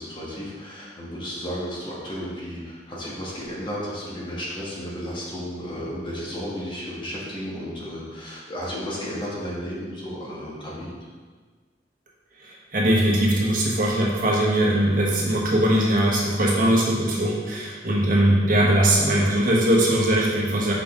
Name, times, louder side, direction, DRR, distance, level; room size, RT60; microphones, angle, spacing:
voice 1, 0.0-11.0, equal, 30° left, -6 dB, 1.5 m, -33 dB
voice 2, 12.4-20.7, right 1 dB, 50° right, -3 dB, 1.2 m, -20 dB
5.9 x 5.4 x 3.7 m, 1.5 s
head